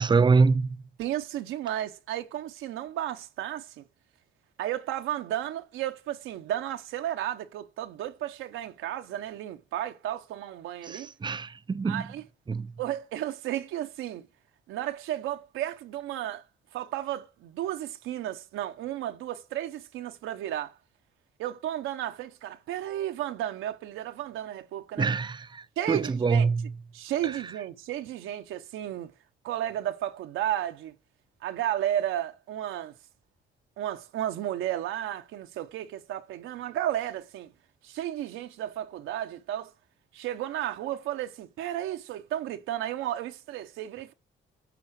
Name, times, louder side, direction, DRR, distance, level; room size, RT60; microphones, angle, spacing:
voice 1, 0.0-0.8 10.9-12.0 12.5-12.7 25.0-26.7 27.2-27.3, right 4 dB, 25° right, 0.5 m, -25 dB
voice 2, 1.0-3.8 4.6-11.1 11.8-12.3 12.8-14.3 14.7-16.4 16.7-20.7 21.4-25.1 25.8-26.5 26.9-29.1 29.4-30.9 31.4-32.9 33.8-37.5 37.8-39.7 40.1-44.1, right 12 dB, 90° right, 1.0 m, -33 dB
10.5 x 3.8 x 7.5 m
cardioid pair, 90°, 20 cm